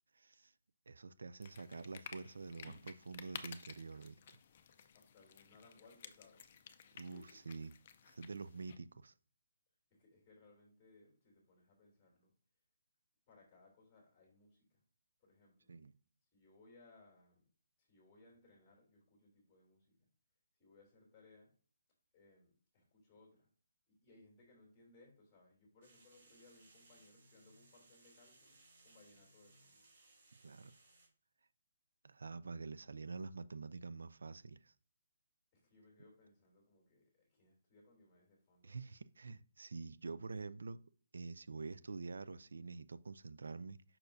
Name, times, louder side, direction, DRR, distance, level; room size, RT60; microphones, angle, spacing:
voice 1, 0.1-0.5 0.9-4.2 6.9-7.7 8.1-9.1 15.7-15.9 30.4-30.7 32.0-34.7 38.6-40.8 41.1-43.8, right 4 dB, 80° right, 0.5 m, -47 dB
sound 1, 1.4-8.8, left 8 dB, 30° left, 0.5 m, -55 dB
voice 2, 4.9-6.5 6.9-7.4 9.9-12.3 13.3-14.8 15.2-15.7 16.3-17.5 17.8-20.1 20.5-21.5 22.1-23.5 23.9-29.9 35.5-38.9, left 2 dB, 15° left, 2.8 m, -65 dB
sound 2, 25.8-31.1, right 2 dB, 35° right, 2.7 m, -66 dB
6.7 x 5.8 x 2.6 m
hypercardioid pair, 175°, 0 cm